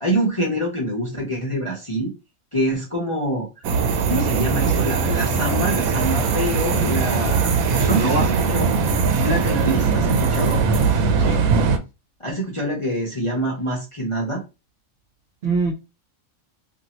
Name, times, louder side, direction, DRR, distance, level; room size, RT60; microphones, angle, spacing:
voice 1, 0.0-2.1 2.5-3.5 4.1-8.7 9.2-10.6 12.2-14.4, equal, 30° left, -3 dB, 0.6 m, -25 dB
sound 1, 3.6-11.8, right 5 dB, 80° right, 1.0 m, -20 dB
voice 2, 7.7-8.3 11.2-11.4 15.4-15.7, right 3 dB, 55° right, 1 dB, 0.8 m, -24 dB
2.7 x 2.6 x 2.9 m, 0.27 s
omnidirectional pair, 1.5 m